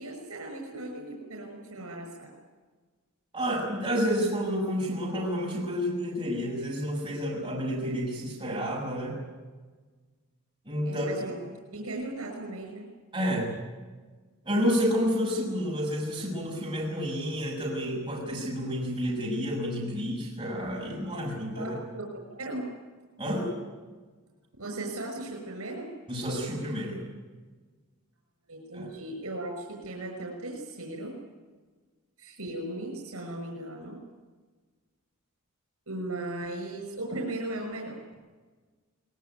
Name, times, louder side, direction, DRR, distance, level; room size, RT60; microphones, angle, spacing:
voice 1, 0.0-2.3 10.8-11.4 11.7-12.9 21.0-21.2 21.6-22.7 24.6-25.9 28.5-31.1 32.2-34.0 35.9-38.0, right 1 dB, 85° right, 1 dB, 6.0 m, -37 dB
voice 2, 3.3-9.2 10.6-11.1 13.1-13.6 14.4-21.8 23.2-23.5 26.1-27.0 28.7-28.9, equal, 20° right, -3 dB, 6.9 m, -30 dB
23.0 x 21.0 x 9.4 m, 1.4 s
head